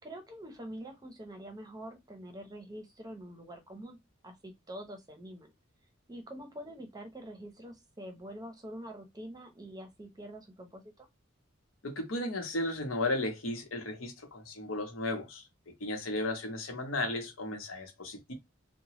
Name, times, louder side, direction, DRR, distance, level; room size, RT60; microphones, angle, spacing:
voice 1, 0.0-4.0 4.2-5.5 6.1-11.1, right 1 dB, 20° right, 0.7 m, -45 dB
voice 2, 11.8-15.4 15.8-18.3, left 2 dB, 85° left, 0.9 m, -34 dB
2.9 x 2.1 x 2.9 m
head